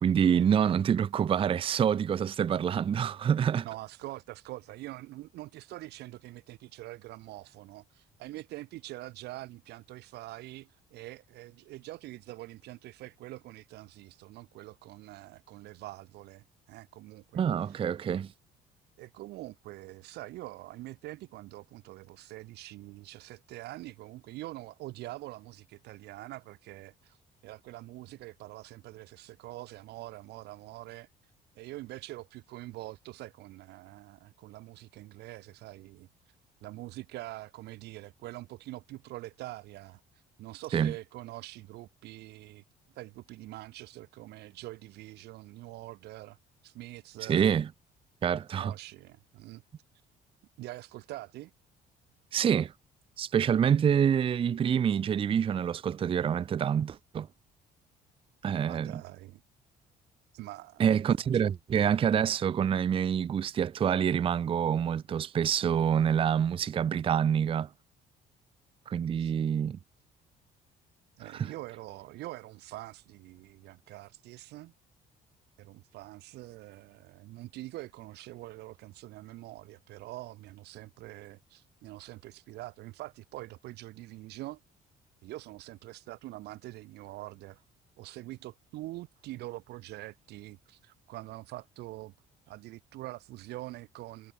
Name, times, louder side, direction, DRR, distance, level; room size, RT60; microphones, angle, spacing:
voice 1, 0.0-3.7 17.3-18.3 40.7-40.9 47.2-47.7 48.2-48.7 52.3-52.7 53.2-57.3 58.4-58.9 60.8-67.7 68.9-69.8 71.3-71.5, right 8 dB, 30° right, 0.5 m, -26 dB
voice 2, 3.6-17.8 19.0-27.2 27.4-31.1 31.6-36.1 36.6-40.0 40.4-42.6 42.9-46.4 46.6-47.5 48.5-49.6 50.6-51.5 58.6-59.4 60.3-60.8 61.3-61.4 69.2-69.3 71.2-74.7 75.6-84.6 85.2-87.6 88.0-92.1 92.5-94.3, right 17 dB, 80° right, 1.0 m, -44 dB
cardioid pair, 110°, 17 cm